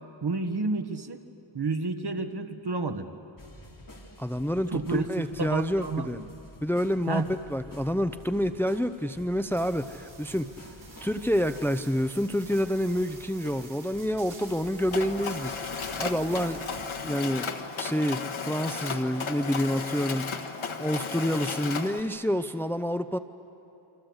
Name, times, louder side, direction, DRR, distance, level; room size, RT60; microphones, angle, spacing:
voice 1, 0.2-1.2 1.5-3.0 4.7-6.3 7.1-7.3, right 3 dB, 55° right, 7 dB, 1.7 m, -30 dB
sound 1, 3.4-16.9, left 1 dB, 45° left, 3.3 m, -49 dB
voice 2, 4.2-6.2 6.6-10.5 11.0-16.6 17.0-17.5 17.8-20.4 20.8-23.2, equal, 5° left, 9 dB, 0.7 m, -28 dB
sound 2, 9.5-17.1, right 3 dB, 70° right, 6.3 m, -50 dB
Mechanisms, 14.9-22.0, left 5 dB, 85° left, 1.6 m, -34 dB
28.5 x 25.5 x 8.1 m, 3.0 s
wide cardioid pair, 105°, 47 cm